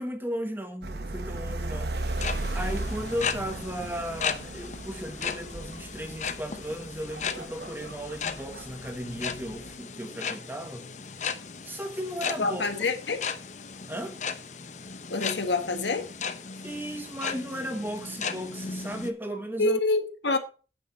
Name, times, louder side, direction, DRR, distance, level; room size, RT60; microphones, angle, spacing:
voice 1, 0.0-1.9 2.5-10.9 11.6-12.9 13.9-14.2 16.6-19.8, equal, 10° right, 1.3 m, -35 dB
sound 1, 0.8-9.8, right 2 dB, 65° right, 1.0 m, -36 dB
sound 2, 2.0-19.1, left 6 dB, 40° left, 0.8 m, -36 dB
voice 2, 12.4-13.2 15.1-16.0 19.6-20.4, left 3 dB, 85° left, 1.5 m, -26 dB
9.1 x 8.3 x 4.3 m
head